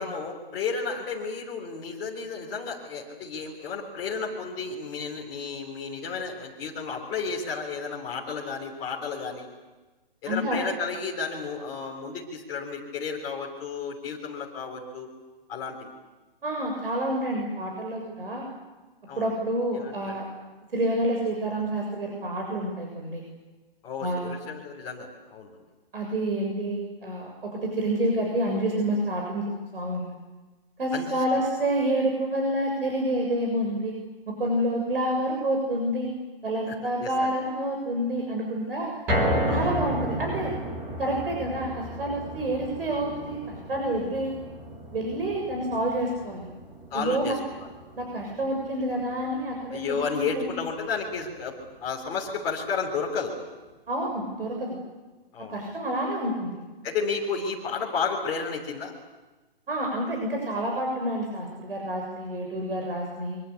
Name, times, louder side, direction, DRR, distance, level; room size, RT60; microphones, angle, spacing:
voice 1, 0.0-9.5 10.2-15.1 15.5-15.9 19.1-19.3 19.7-20.2 23.8-25.6 30.9-31.2 36.7-37.3 39.5-39.7 46.9-47.7 49.7-51.5 51.8-53.3 55.3-55.7 56.8-58.9, left 5 dB, 10° left, -3 dB, 3.5 m, -32 dB
voice 2, 10.3-10.6 16.4-18.5 19.2-20.3 20.7-23.2 24.0-24.4 25.9-30.1 30.8-34.0 34.3-36.1 36.4-38.9 39.5-40.5 41.0-44.4 44.9-46.5 46.9-47.4 48.0-49.8 50.1-50.5 53.9-54.8 55.5-56.5 59.7-63.4, right 1 dB, 70° right, 1 dB, 7.1 m, -28 dB
sound 1, 39.1-51.3 51.7-51.8 52.3-52.4, equal, 5° right, 1.3 m, -33 dB
25.0 x 24.5 x 8.4 m, 1.2 s
hypercardioid pair, 180°, 30 cm